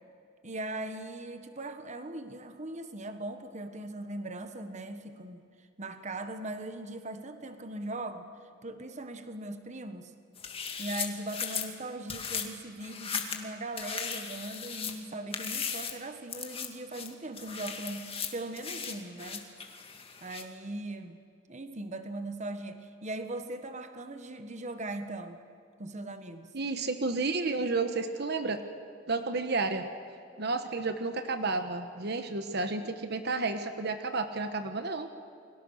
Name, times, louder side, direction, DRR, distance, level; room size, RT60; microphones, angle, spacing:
voice 1, 0.4-5.5 5.8-8.2 8.6-10.1 10.8-19.5 20.2-21.2 21.5-25.4 25.8-26.5, right 2 dB, 35° right, 8 dB, 1.5 m, -39 dB
sound 1, 10.4-11.7 12.1-12.5 12.8-13.4 13.8-15.0 15.3-16.0 16.3-16.7 16.9-20.4, left 6 dB, 30° left, 2.2 m, -37 dB
voice 2, 26.5-28.6 29.1-29.9 30.4-35.1, right 3 dB, 55° right, 7 dB, 1.3 m, -31 dB
29.5 x 23.0 x 6.6 m, 2.3 s
head